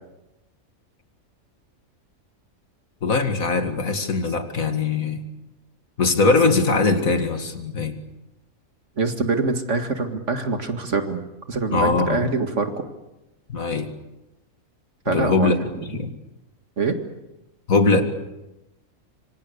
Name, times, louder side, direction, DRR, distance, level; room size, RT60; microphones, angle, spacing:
voice 1, 3.0-5.2 6.0-7.9 11.7-12.2 13.5-13.9 15.1-15.6 15.9-16.1 17.7-18.0, left 3 dB, 75° left, 7 dB, 2.5 m, -21 dB
voice 2, 9.0-11.2 11.5-12.8 15.1-15.5 16.8-17.0, right 3 dB, 55° right, 7 dB, 2.3 m, -24 dB
26.0 x 25.5 x 6.9 m, 0.96 s
omnidirectional pair, 1.5 m